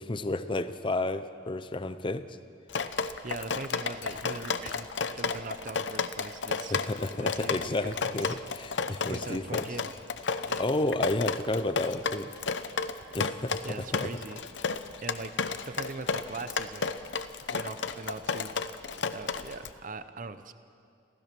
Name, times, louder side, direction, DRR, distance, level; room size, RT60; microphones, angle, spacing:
voice 1, 0.0-2.2 6.7-9.7 10.3-12.3 13.1-14.1, left 2 dB, 25° left, 11 dB, 0.6 m, -31 dB
Drip, 2.7-19.7, left 5 dB, 75° left, 0.8 m, -32 dB
voice 2, 2.8-4.9 5.2-6.8 7.1-8.4 9.1-9.9 10.4-10.7 13.6-14.4 15.0-15.3 15.7-16.9 17.5-18.5 19.1-20.5, right 3 dB, 45° right, 11 dB, 0.8 m, -41 dB
27.0 x 16.0 x 6.1 m, 2.4 s
head